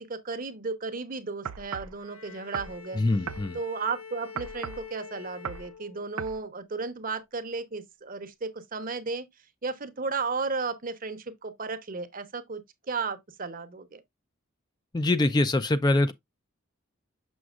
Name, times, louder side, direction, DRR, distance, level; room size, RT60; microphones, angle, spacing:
voice 1, 0.0-3.0 3.5-9.3 9.6-14.0, right 4 dB, 40° right, 0.9 m, -34 dB
sound 1, 1.5-2.0 2.5-2.8 3.3-3.5 4.4-4.9 5.5-5.7 6.2-6.4, right 8 dB, 85° right, 0.5 m, -36 dB
Bowed string instrument, 2.0-6.4, left 6 dB, 80° left, 1.1 m, -46 dB
voice 2, 3.0-3.6 14.9-16.1, left 2 dB, 20° left, 0.3 m, -24 dB
6.9 x 6.2 x 2.4 m
head